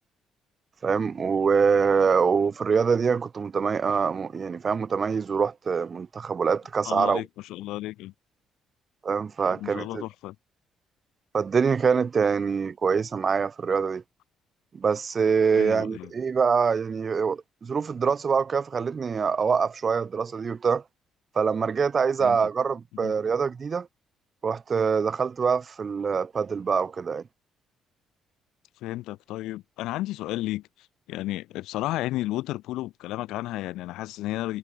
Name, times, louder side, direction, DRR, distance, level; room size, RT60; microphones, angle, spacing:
voice 1, 0.8-7.2 9.0-10.0 11.3-14.0 14.7-20.8 21.3-23.9 24.4-27.2, right 6 dB, 40° right, 6.0 m, -24 dB
voice 2, 6.8-8.1 9.5-10.4 15.5-16.1 22.2-22.4 23.0-23.1 28.8-30.6 31.1-34.6, left 16 dB, 85° left, 7.4 m, -32 dB
cardioid pair, 90°, 0 cm